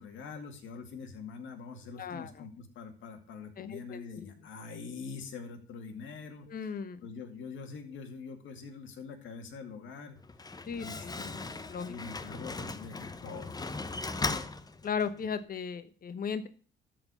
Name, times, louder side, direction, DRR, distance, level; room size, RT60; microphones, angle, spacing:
voice 1, 0.0-6.7 7.0-10.2 10.8-11.4 11.9-14.2, left 5 dB, 75° left, 4 dB, 2.3 m, -44 dB
voice 2, 2.0-2.3 3.6-4.3 6.5-7.0 10.7-11.1 11.7-11.9 14.8-16.5, left 6 dB, 45° left, 11 dB, 1.0 m, -36 dB
Slam, 10.2-15.3, left 3 dB, 20° left, 0.8 m, -38 dB
13.0 x 4.7 x 6.9 m, 0.40 s
cardioid pair, 90°, 20 cm